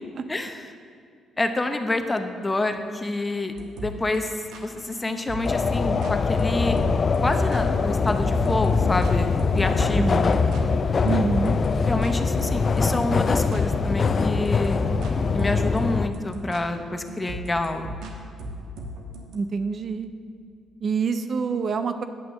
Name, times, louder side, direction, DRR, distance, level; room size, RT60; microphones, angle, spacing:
voice 1, 1.4-3.5 3.8-6.8 7.2-10.2 11.9-14.8 15.3-17.8, left 2 dB, 20° left, 7 dB, 0.9 m, -27 dB
sound 1, 3.6-19.4, right 1 dB, 85° right, 1.2 m, -38 dB
sound 2, 5.4-16.1, left 4 dB, 40° left, 0.4 m, -23 dB
voice 2, 10.0-10.3 11.0-11.6 19.3-20.1 20.8-22.0, right 5 dB, 50° right, 9 dB, 0.6 m, -26 dB
9.5 x 5.9 x 7.4 m, 2.4 s
cardioid pair, 90°, 0 cm